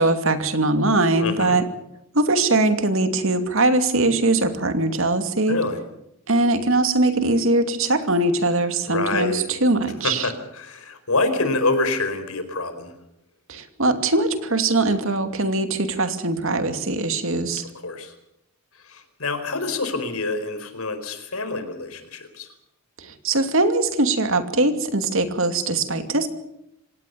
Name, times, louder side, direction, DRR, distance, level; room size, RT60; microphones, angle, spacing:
voice 1, 0.0-1.6 2.1-5.6 6.3-10.3 13.5-17.6 23.0-26.3, right 2 dB, 65° right, 8 dB, 2.7 m, -21 dB
voice 2, 1.2-1.6 5.5-5.8 8.9-9.5 10.0-12.9 17.8-18.1 18.8-22.5, left 3 dB, 80° left, 9 dB, 4.6 m, -26 dB
26.5 x 18.0 x 6.9 m, 0.80 s
head